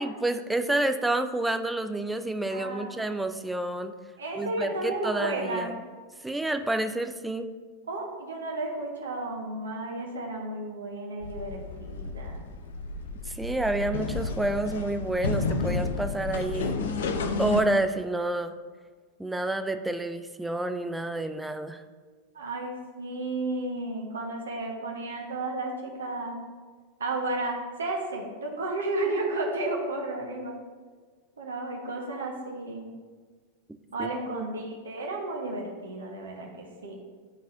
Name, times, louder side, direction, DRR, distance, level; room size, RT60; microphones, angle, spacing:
voice 1, 0.0-3.9 4.4-5.8 6.2-7.5 13.3-16.8 17.4-18.5 19.2-21.8 34.0-34.5, right 2 dB, 5° right, 8 dB, 0.5 m, -29 dB
voice 2, 2.5-3.0 4.2-5.8 7.9-12.3 22.3-26.5 27.0-30.5 31.4-32.9 33.9-37.0, right 2 dB, 70° right, 0 dB, 1.4 m, -33 dB
sound 1, 11.2-17.6, left 3 dB, 60° left, 0.6 m, -31 dB
12.0 x 4.0 x 2.7 m, 1.5 s
figure-of-eight pair, 90°, 0 cm